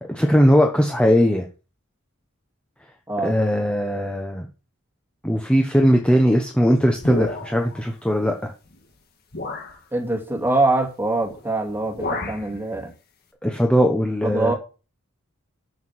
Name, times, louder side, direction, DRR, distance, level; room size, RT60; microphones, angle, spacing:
voice 1, 0.1-1.5 3.2-4.5 5.2-8.5 13.4-14.5, equal, 5° left, 2 dB, 1.1 m, -19 dB
sound 1, 7.0-7.8 8.7-8.8 9.3-9.8 11.2-11.4 11.7-12.5, left 2 dB, 45° left, 1.8 m, -31 dB
voice 2, 9.9-12.9 14.2-14.5, right 2 dB, 10° right, 2 dB, 2.4 m, -23 dB
7.5 x 7.0 x 6.1 m, 0.33 s
head